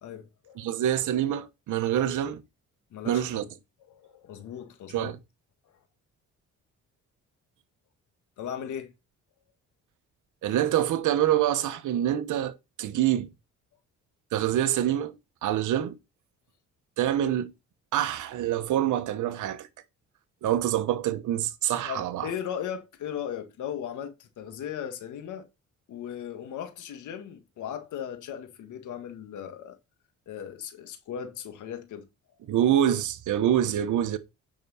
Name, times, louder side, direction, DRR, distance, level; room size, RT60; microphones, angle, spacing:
voice 1, 0.0-0.7 2.9-3.5 3.9-5.1 8.4-8.9 21.8-25.5 25.9-29.8 30.3-32.1, left 9 dB, 80° left, 1.8 m, -37 dB
voice 2, 0.6-2.4 3.0-3.4 4.9-5.2 10.4-13.3 14.3-16.0 17.0-17.5 17.9-19.7 20.4-22.3 32.5-34.2, right 11 dB, 80° right, 1.2 m, -26 dB
9.0 x 6.1 x 4.3 m
cardioid pair, 90°, 30 cm